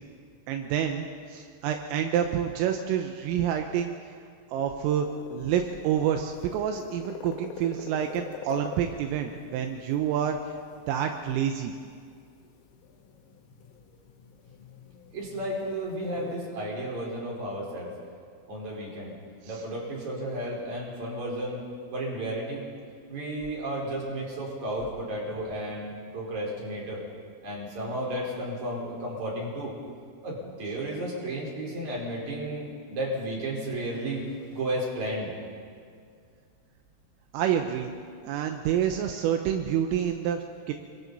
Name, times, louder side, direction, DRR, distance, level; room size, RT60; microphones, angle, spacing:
voice 1, 0.5-3.9 4.5-10.4 10.9-11.7 19.5-19.6 37.3-37.9 38.2-40.7, right 9 dB, 80° right, 5 dB, 3.5 m, -28 dB
sound 1, 4.9-16.4, left 7 dB, 80° left, 4.0 m, -47 dB
voice 2, 15.1-17.9 18.5-19.1 19.5-21.6 21.9-22.7 23.1-27.0 27.4-29.8 30.2-35.3, right 1 dB, 35° right, -3 dB, 5.3 m, -33 dB
29.0 x 23.0 x 4.1 m, 2.2 s
omnidirectional pair, 5.9 m